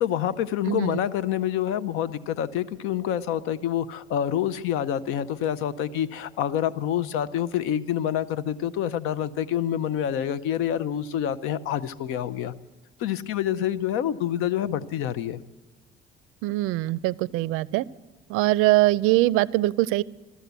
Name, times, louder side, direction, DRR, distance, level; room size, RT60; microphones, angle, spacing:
voice 1, 0.0-12.5 13.0-15.4, left 10 dB, 85° left, 15 dB, 0.7 m, -27 dB
voice 2, 0.7-1.0 16.4-17.8 18.3-20.0, right 18 dB, 90° right, 21 dB, 0.4 m, -22 dB
14.5 x 12.5 x 8.1 m, 1.1 s
cardioid pair, 175°, 21 cm